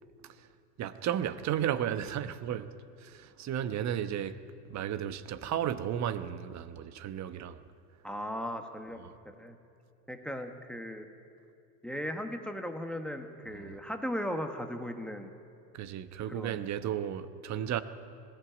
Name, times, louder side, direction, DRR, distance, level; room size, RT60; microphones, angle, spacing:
voice 1, 0.8-2.7 3.0-4.4 4.7-7.6 9.0-9.1 13.5-13.8 15.7-17.8, right 10 dB, 35° right, 1.0 m, -34 dB
voice 2, 8.0-9.0 9.4-9.6 10.1-11.1 11.8-15.3 16.3-16.6 16.9-17.0, equal, ahead, 1.4 m, -37 dB
19.5 x 15.5 x 9.1 m
hypercardioid pair, 105°, 49 cm